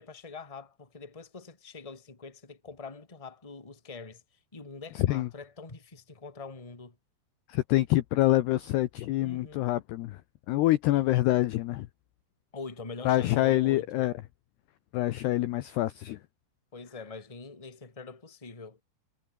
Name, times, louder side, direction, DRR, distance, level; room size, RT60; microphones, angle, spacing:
voice 1, 0.0-4.2 4.5-6.9 9.2-9.7 12.5-14.1 16.7-18.8, left 4 dB, 15° left, 1.2 m, -44 dB
voice 2, 5.0-5.3 7.5-10.2 10.5-11.9 13.1-14.1 14.9-16.2, left 16 dB, 85° left, 2.3 m, -26 dB
omnidirectional pair, 5.9 m